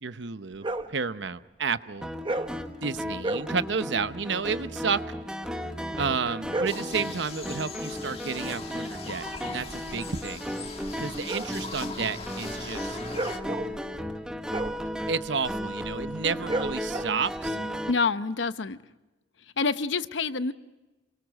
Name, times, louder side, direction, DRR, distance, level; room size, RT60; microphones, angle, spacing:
voice 1, 0.0-2.1 2.8-5.1 6.0-10.4 11.0-13.0 15.1-17.6, right 5 dB, 70° right, 12 dB, 0.8 m, -31 dB
sound 1, 0.6-1.0 2.2-2.6 3.2-3.6 6.2-6.9 9.5-17.5, right 2 dB, 25° right, 0.9 m, -35 dB
sound 2, 2.0-17.9, equal, 5° right, 1.1 m, -35 dB
sound 3, 6.7-13.4, left 4 dB, 30° left, 1.8 m, -41 dB
voice 2, 17.9-18.8 19.6-20.5, left 4 dB, 75° left, 13 dB, 0.8 m, -27 dB
28.0 x 23.5 x 6.4 m, 1.1 s
head